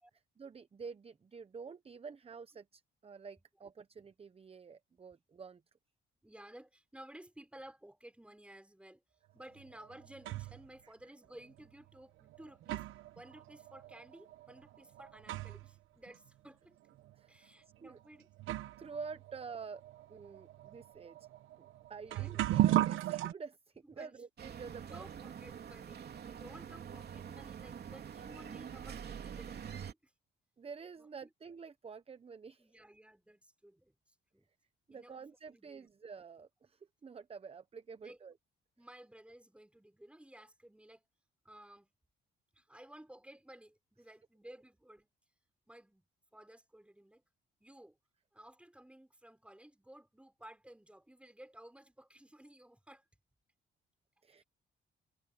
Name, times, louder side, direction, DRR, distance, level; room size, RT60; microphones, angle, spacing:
voice 1, 0.1-5.6 10.8-10.9 17.2-17.5 17.8-18.0 18.8-19.8 20.1-21.2 21.6-25.0 30.6-32.8 34.9-38.3 54.2-54.4, right 5 dB, 30° right, 0.9 m, -49 dB
voice 2, 6.2-9.0 9.3-12.8 13.2-16.8 17.3-18.3 22.0-22.5 24.0-24.2 24.8-30.1 31.0-31.3 32.6-34.5 34.9-35.9 38.0-38.2 38.8-41.0 41.4-41.9 42.5-45.1 45.7-46.1 46.3-47.2 47.6-48.0 48.3-53.0 54.4-54.5, right 1 dB, 5° right, 4.7 m, -56 dB
sound 1, 9.6-10.7 11.6-11.7 12.3-15.8 16.1-16.2 17.0-17.1 17.9-18.0 18.4-23.3, right 14 dB, 85° right, 1.0 m, -36 dB
sound 2, 24.4-29.9, right 8 dB, 55° right, 3.1 m, -46 dB
cardioid pair, 90°, 20 cm